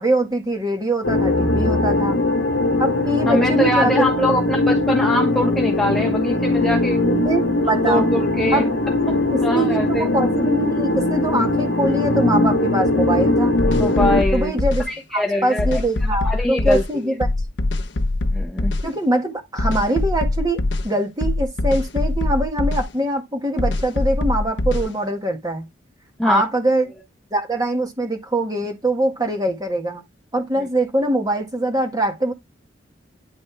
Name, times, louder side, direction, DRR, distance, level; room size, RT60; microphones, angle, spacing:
voice 1, 0.0-2.2 2.8-3.9 7.3-8.1 8.5-8.7 9.3-13.5 14.3-14.8 15.1-17.3 18.8-25.7 26.2-26.9 27.3-30.0 30.3-32.3, right 1 dB, 20° right, 1.8 m, -23 dB
sound 1, 1.0-14.2, left 2 dB, 80° left, 1.1 m, -20 dB
voice 2, 3.3-7.2 7.9-8.7 9.4-10.1 13.7-14.5 14.9-15.8 16.2-16.8 18.3-18.7 26.2-26.4, left 1 dB, ahead, 1.2 m, -23 dB
sound 2, 13.6-14.9 15.6-16.9 17.2-18.9 19.6-20.9 21.2-22.9 23.6-24.9, left 2 dB, 65° left, 0.8 m, -22 dB
10.0 x 4.1 x 3.4 m
head